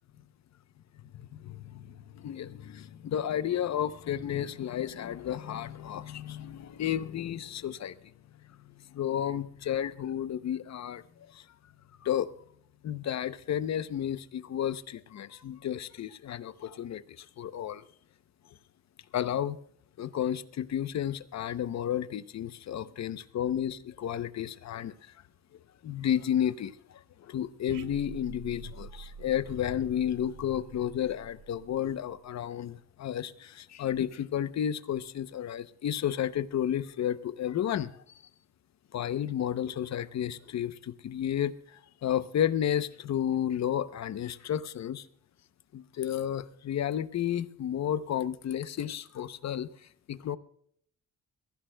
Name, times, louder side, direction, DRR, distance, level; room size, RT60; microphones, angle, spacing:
voice 1, 1.3-8.0 8.7-11.4 12.0-12.3 12.8-17.8 19.1-19.6 20.0-24.9 25.8-37.9 38.9-45.1 45.7-49.7 50.1-50.4, left 10 dB, 55° left, 14 dB, 0.8 m, -32 dB
sound 1, 27.7-32.3, right 6 dB, 80° right, 0.9 m, -47 dB
21.5 x 15.0 x 2.2 m, 0.63 s
cardioid pair, 115°, 32 cm